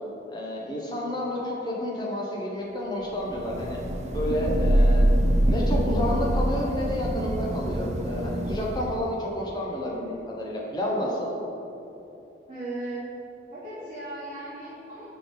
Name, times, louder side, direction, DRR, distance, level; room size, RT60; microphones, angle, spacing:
voice 1, 0.3-3.8 4.1-5.1 5.5-11.3, left 1 dB, 25° left, -3 dB, 0.9 m, -30 dB
Thunder / Rain, 3.3-9.1, right 1 dB, 35° right, 0.4 m, -24 dB
voice 2, 12.5-13.0 13.5-15.1, right 2 dB, 20° right, -14 dB, 1.4 m, -36 dB
6.0 x 3.8 x 5.5 m, 2.9 s
head